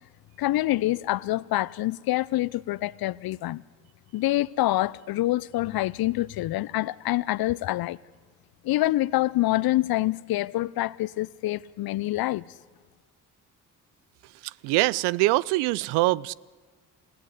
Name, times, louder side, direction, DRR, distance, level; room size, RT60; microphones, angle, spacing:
voice 1, 0.4-3.6 4.1-8.0 8.6-12.4, left 16 dB, 55° left, 0.8 m, -26 dB
voice 2, 14.6-16.3, right 20 dB, 70° right, 0.6 m, -23 dB
28.0 x 16.5 x 8.2 m
hypercardioid pair, 45°, 43 cm